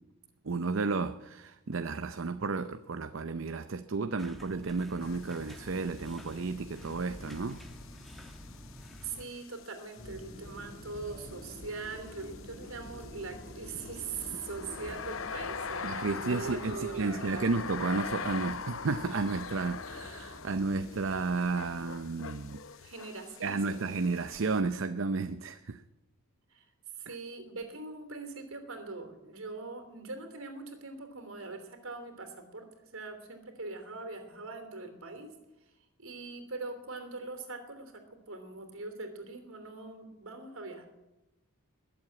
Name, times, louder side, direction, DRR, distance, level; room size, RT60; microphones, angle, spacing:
voice 1, 0.4-7.6 15.8-22.6 23.4-25.8, right 4 dB, 65° right, 0.6 m, -32 dB
sound 1, 4.2-9.3, equal, ahead, 1.5 m, -48 dB
sound 2, 5.0-24.6, left 6 dB, 65° left, 0.7 m, -44 dB
voice 2, 9.0-17.4 22.8-23.8 26.5-26.6 27.1-32.7 32.9-35.3 36.0-40.9, right 3 dB, 80° right, 3.1 m, -42 dB
Subway metro underground, 10.0-21.9, left 1 dB, 50° left, 4.6 m, -48 dB
21.0 x 7.8 x 8.6 m
head